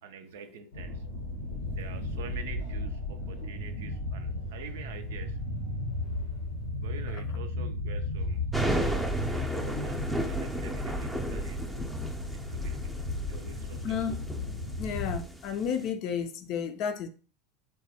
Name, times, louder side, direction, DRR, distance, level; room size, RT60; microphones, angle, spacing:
voice 1, 0.0-1.1 1.7-5.4 6.8-8.5 9.4-12.0 12.3-14.0, right 7 dB, 70° right, 0.3 m, -47 dB
sound 1, 0.7-15.2, left 1 dB, 85° left, 0.7 m, -35 dB
sound 2, 8.5-15.9, right 1 dB, 5° right, 0.5 m, -34 dB
voice 2, 13.8-14.3 14.8-17.1, left 7 dB, 55° left, 0.4 m, -32 dB
3.3 x 2.2 x 2.7 m
hypercardioid pair, 80°, 0 cm